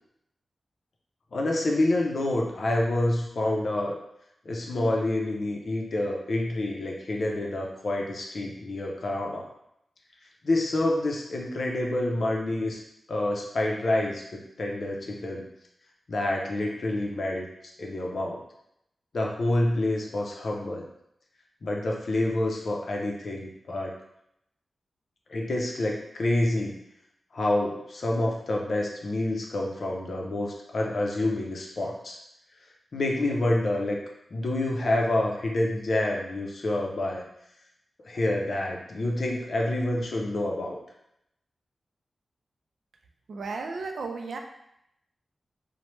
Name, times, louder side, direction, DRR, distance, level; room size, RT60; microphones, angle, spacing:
voice 1, 1.3-4.0 4.4-9.5 10.4-12.8 13.1-15.5 16.1-17.5 17.8-18.4 19.1-20.9 21.6-23.9 25.3-26.8 27.3-32.2 32.9-34.0 34.3-37.2 38.1-40.8, left 1 dB, 50° left, -1 dB, 0.5 m, -28 dB
voice 2, 43.3-44.4, right 4 dB, 70° right, 3 dB, 0.3 m, -34 dB
2.9 x 2.1 x 3.1 m, 0.79 s
wide cardioid pair, 170°, 0 cm